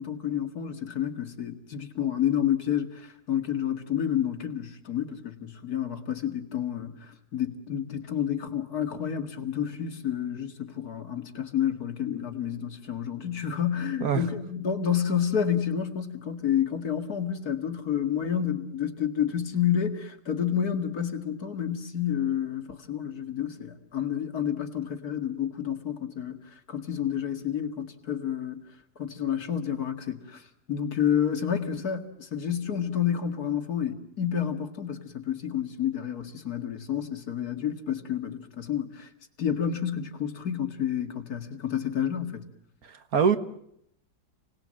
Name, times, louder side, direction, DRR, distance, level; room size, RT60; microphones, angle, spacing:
voice 1, 0.0-28.6 29.0-30.4 30.7-39.1 39.4-42.4, left 9 dB, 65° left, 2.5 m, -29 dB
voice 2, 42.8-43.4, right 6 dB, 65° right, 1.9 m, -24 dB
29.5 x 19.5 x 7.7 m
omnidirectional pair, 1.7 m